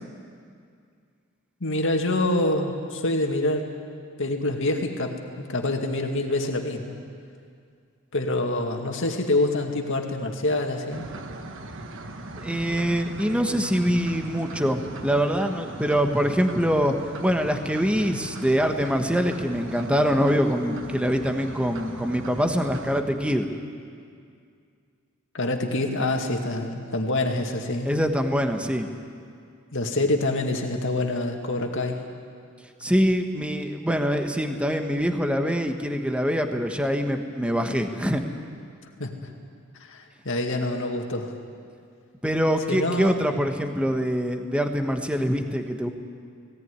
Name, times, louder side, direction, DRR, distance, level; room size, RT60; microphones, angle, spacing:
voice 1, 1.6-3.6 4.2-7.0 8.1-11.1 25.3-27.9 29.7-32.0 39.0-39.3 39.9-41.3 42.7-43.2, left 2 dB, 60° left, 3 dB, 2.2 m, -26 dB
sound 1, 10.9-23.0, right 1 dB, 60° right, 1.4 m, -39 dB
voice 2, 12.3-16.9 17.2-23.5 27.8-28.9 32.8-38.2 42.2-45.9, equal, 5° right, 5 dB, 1.2 m, -24 dB
18.0 x 18.0 x 9.7 m, 2.3 s
head